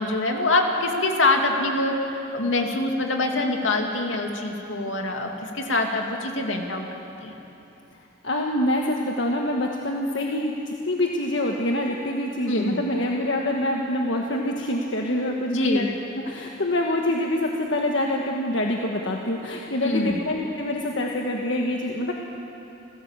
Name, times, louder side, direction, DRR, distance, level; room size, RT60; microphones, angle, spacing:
voice 1, 0.0-2.0 2.3-6.9 7.2-7.3 12.5-12.8 15.5-15.9 19.8-20.2, left 2 dB, 90° left, 2 dB, 2.6 m, -24 dB
voice 2, 7.9-15.8 16.2-22.1, left 1 dB, 70° left, 0 dB, 1.5 m, -26 dB
29.5 x 16.0 x 7.4 m, 3.0 s
head